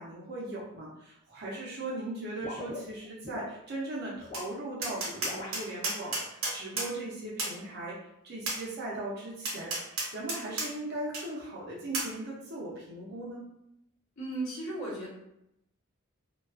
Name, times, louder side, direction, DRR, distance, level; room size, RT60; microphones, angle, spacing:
voice 1, 0.0-8.0 8.2-13.4, right 2 dB, 50° right, -5 dB, 0.6 m, -38 dB
sound 1, 2.4-3.5 4.2-4.5 5.2-5.6, left 3 dB, 25° left, 0.7 m, -41 dB
Tap, 4.3-4.5 4.8-6.9 7.4-7.5 8.5-8.6 9.4-10.7 11.1-11.2 11.9-12.1, right 2 dB, 90° right, 0.8 m, -32 dB
voice 2, 14.2-15.1, right 2 dB, 75° left, -6 dB, 0.9 m, -35 dB
2.3 x 2.3 x 2.3 m, 0.82 s
head